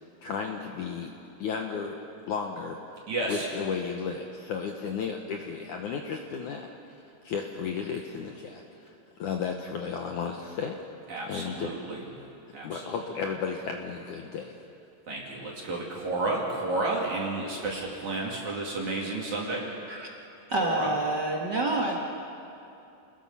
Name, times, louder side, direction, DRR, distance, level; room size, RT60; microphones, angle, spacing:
voice 1, 0.2-1.1 1.4-2.0 2.3-2.8 3.3-6.6 7.2-8.9 9.2-10.8 11.3-11.8 12.6-14.5, left 6 dB, 75° left, 2 dB, 1.8 m, -33 dB
voice 2, 3.1-3.5 11.1-12.0 12.5-13.0 15.1-19.7 20.6-20.9, right 2 dB, 50° right, -3 dB, 3.4 m, -31 dB
voice 3, 20.5-22.0, right 2 dB, 65° right, -2 dB, 1.0 m, -27 dB
29.5 x 20.5 x 5.6 m, 2.8 s
omnidirectional pair, 4.9 m